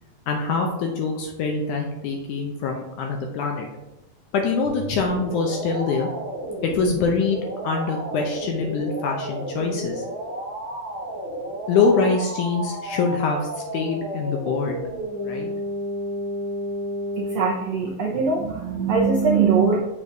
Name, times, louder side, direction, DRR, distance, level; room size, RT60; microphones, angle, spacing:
voice 1, 0.3-3.7 4.3-6.1 6.6-10.1 11.7-14.8 15.2-15.5, left 4 dB, 80° left, 1 dB, 1.9 m, -24 dB
sound 1, 4.6-17.5, equal, 60° left, 2.8 m, -32 dB
voice 2, 17.2-19.8, right 5 dB, 80° right, -3 dB, 1.4 m, -21 dB
7.2 x 6.5 x 2.6 m, 0.97 s
omnidirectional pair, 4.1 m